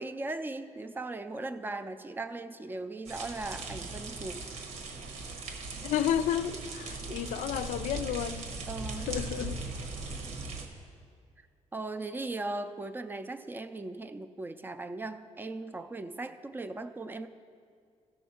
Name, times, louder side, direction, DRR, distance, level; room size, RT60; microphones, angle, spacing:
voice 1, 0.0-4.6 7.1-7.2 8.7-9.1 11.7-17.3, right 2 dB, 15° right, 10 dB, 0.4 m, -38 dB
sound 1, 3.1-10.7, right 3 dB, 75° right, 1.2 m, -39 dB
voice 2, 5.8-8.5 9.1-9.6, left 10 dB, 85° left, 12 dB, 0.4 m, -31 dB
15.5 x 6.3 x 4.3 m, 2.2 s
cardioid pair, 145°, 12 cm